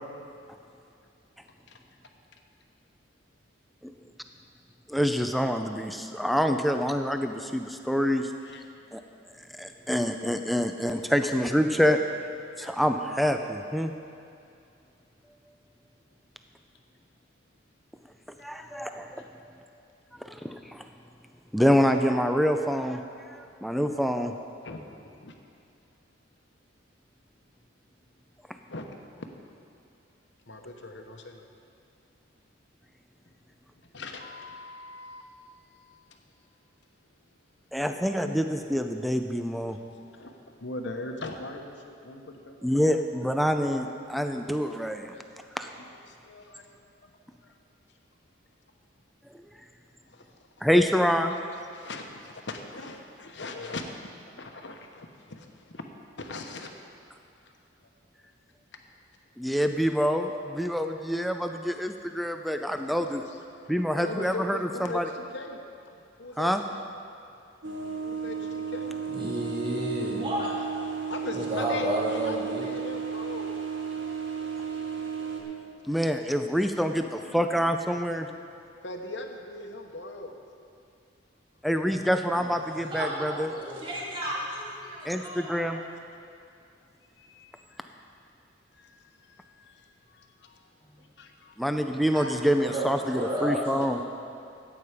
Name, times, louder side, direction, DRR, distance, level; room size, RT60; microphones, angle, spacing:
voice 1, 4.9-8.3 8.9-9.0 9.5-12.0 12.6-13.9 18.4-19.5 20.2-20.8 21.5-24.3 37.7-39.8 42.6-45.1 45.6-45.7 49.3-49.4 50.6-51.4 59.4-63.2 63.7-65.0 66.4-66.6 75.9-78.3 81.6-83.5 85.0-85.8 91.6-94.0, equal, ahead, 6 dB, 0.5 m, -26 dB
voice 2, 30.5-31.5 33.8-35.3 36.1-36.2 38.1-38.2 39.7-42.7 45.1-45.2 45.8-47.1 47.4-47.6 50.1-50.3 51.5-55.8 56.2-56.7 57.4-57.5 62.7-63.4 63.9-65.6 66.2-66.8 68.0-69.4 70.4-70.6 71.1-73.6 76.9-77.4 78.8-80.3 84.8-85.3 85.7-86.0 87.2-88.0 88.7-90.7 91.2-91.5, left 2 dB, 65° left, 4 dB, 1.1 m, -41 dB
sound 1, 67.6-75.4, right 6 dB, 80° right, 1.5 m, -34 dB
voice 3, 69.1-70.5 71.3-72.7 82.7-85.6 92.1-92.3 92.6-94.0, right 1 dB, 25° right, -5 dB, 1.9 m, -32 dB
14.0 x 8.6 x 5.0 m, 2.5 s
head